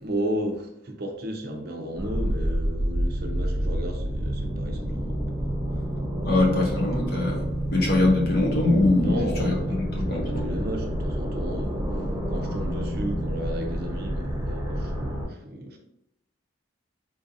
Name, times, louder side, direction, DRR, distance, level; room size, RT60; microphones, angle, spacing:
voice 1, 0.0-5.6 9.0-15.8, equal, 50° right, 0.5 m, -34 dB
sound 1, 2.0-15.3, equal, 20° right, 0.9 m, -28 dB
voice 2, 6.2-7.4 7.7-10.5, left 2 dB, 50° left, 0.8 m, -23 dB
3.8 x 2.6 x 2.6 m
head